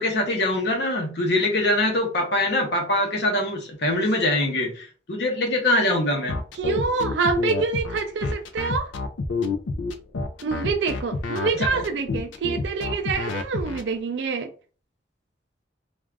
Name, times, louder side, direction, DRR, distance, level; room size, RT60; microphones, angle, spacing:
voice 1, 0.0-6.4 11.5-11.7, left 1 dB, 60° left, 0.8 m, -23 dB
sound 1, 6.3-13.8, left 3 dB, 85° left, 0.4 m, -28 dB
voice 2, 6.5-8.9 10.4-14.5, right 4 dB, 70° right, 0.3 m, -26 dB
2.4 x 2.4 x 3.2 m
head